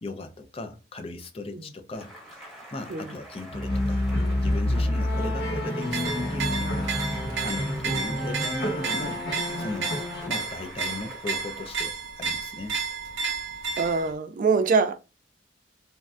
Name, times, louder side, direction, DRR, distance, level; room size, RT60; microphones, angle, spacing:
voice 1, 0.0-2.1 2.7-4.0 4.4-6.9 7.4-9.2 9.6-12.8, left 2 dB, 30° left, 0.4 m, -37 dB
Cheering / Applause, 1.9-12.0, equal, ahead, 0.9 m, -45 dB
sound 1, 3.5-10.3, left 1 dB, 55° left, 0.9 m, -28 dB
sound 2, 5.8-14.1, right 4 dB, 85° right, 0.6 m, -32 dB
voice 2, 13.8-15.0, right 4 dB, 45° right, 0.3 m, -24 dB
3.1 x 2.6 x 2.3 m
head